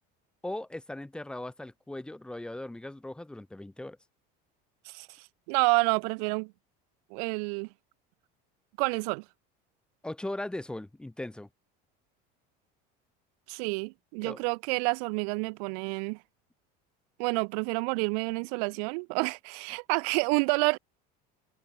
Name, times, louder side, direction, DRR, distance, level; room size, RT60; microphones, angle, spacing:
voice 1, 0.4-4.0 10.0-11.5 14.2-14.4, left 1 dB, 5° left, 4.0 m, -38 dB
voice 2, 5.5-6.5 7.1-7.7 8.8-9.2 13.5-16.2 17.2-20.8, right 34 dB, 75° right, 3.2 m, -29 dB
cardioid pair, 175°, 20 cm